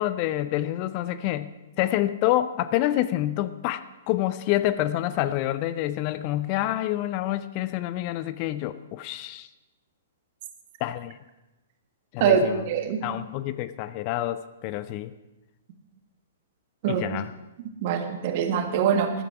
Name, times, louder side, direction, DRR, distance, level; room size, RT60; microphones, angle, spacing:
voice 1, 0.0-9.5 10.8-11.2 12.1-12.6 13.0-15.1 16.9-17.3, left 14 dB, 35° left, 14 dB, 0.5 m, -27 dB
voice 2, 12.2-13.0 16.8-17.0 17.8-19.1, right 7 dB, 45° right, 6 dB, 1.6 m, -23 dB
14.0 x 12.0 x 4.8 m, 1.0 s
figure-of-eight pair, 110°, 0 cm